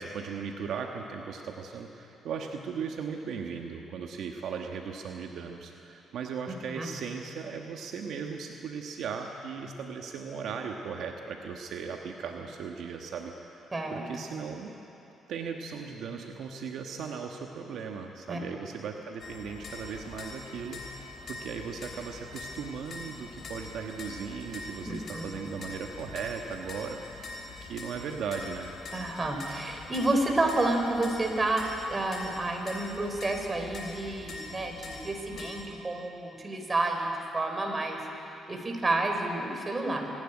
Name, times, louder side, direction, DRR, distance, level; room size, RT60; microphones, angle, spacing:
voice 1, 0.0-13.6 13.9-14.7 15.3-20.8 21.3-27.3 27.6-28.7, right 6 dB, 75° right, 2 dB, 1.3 m, -37 dB
voice 2, 13.7-14.0 18.3-18.4 24.9-25.2 28.9-38.0 38.5-40.1, right 2 dB, 25° right, 3 dB, 3.8 m, -30 dB
sound 1, 19.2-35.6, left 3 dB, 55° left, 3.4 m, -43 dB
25.5 x 11.5 x 9.9 m, 2.9 s
cardioid pair, 90°, 0 cm